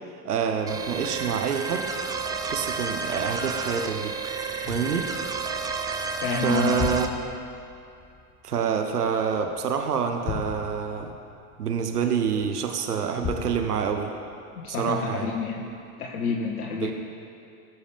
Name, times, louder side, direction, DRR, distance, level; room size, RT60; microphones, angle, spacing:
voice 1, 0.2-1.9 2.5-4.1 4.7-5.1 6.4-7.1 8.4-11.1 11.6-14.1 14.7-15.3 16.8-16.9, right 6 dB, 85° right, 5 dB, 0.9 m, -27 dB
sound 1, 0.7-7.1, right 4 dB, 10° right, 0.4 m, -31 dB
sound 2, 4.6-9.7 10.2-12.6 13.2-15.2 15.7-15.8, left 6 dB, 20° left, 0.8 m, -38 dB
voice 2, 6.2-6.9 14.6-15.7 16.0-16.9, left 5 dB, 75° left, -2 dB, 1.3 m, -29 dB
19.0 x 7.1 x 3.4 m, 2.6 s
hypercardioid pair, 95°, 45 cm